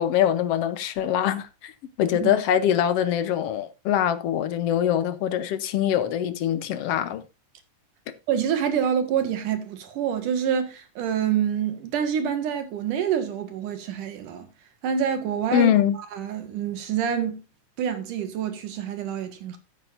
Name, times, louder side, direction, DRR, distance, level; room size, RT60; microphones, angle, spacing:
voice 1, 0.0-1.7 2.0-7.2 15.5-16.0, left 10 dB, 70° left, 1.5 m, -23 dB
voice 2, 8.3-14.5 14.8-15.7 16.1-17.5 17.8-19.6, right 8 dB, 75° right, 3.2 m, -27 dB
15.0 x 8.8 x 2.6 m
omnidirectional pair, 3.7 m